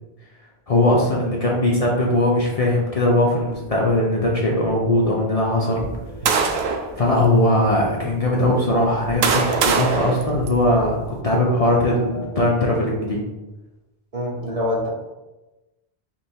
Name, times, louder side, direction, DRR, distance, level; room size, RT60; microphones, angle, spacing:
voice 1, 0.7-5.9 7.0-11.0 11.2-13.2, left 1 dB, 40° left, -3 dB, 0.6 m, -20 dB
sound 1, 3.5-12.5, right 1 dB, 10° right, 0.9 m, -37 dB
sound 2, 5.8-6.9 7.7-7.8 8.7-11.0, right 5 dB, 80° right, 0.8 m, -23 dB
voice 2, 14.1-14.9, left 1 dB, 40° right, -3 dB, 0.8 m, -25 dB
3.4 x 3.0 x 4.3 m, 1.1 s
omnidirectional pair, 1.1 m